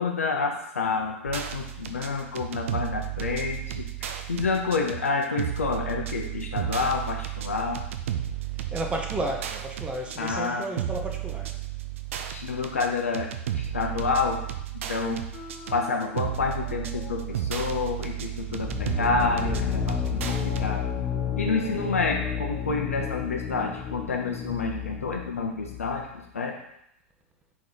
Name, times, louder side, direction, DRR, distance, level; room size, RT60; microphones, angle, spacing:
voice 1, 0.0-7.8 10.2-10.7 12.3-13.3 13.5-14.4 14.9-15.2 15.7-20.8 21.4-26.1 26.3-26.6, left 4 dB, 90° left, 2 dB, 0.6 m, -28 dB
sound 1, 1.2-20.7, right 11 dB, 70° right, 0.4 m, -33 dB
voice 2, 8.7-11.6, right 1 dB, 15° right, 2 dB, 0.7 m, -32 dB
sound 2, 15.3-19.5 20.2-25.0, left 4 dB, 40° left, 1.4 m, -46 dB
sound 3, 18.5-26.1, left 8 dB, 20° left, 0.6 m, -31 dB
4.1 x 3.1 x 3.9 m, 0.76 s
hypercardioid pair, 110°, 7 cm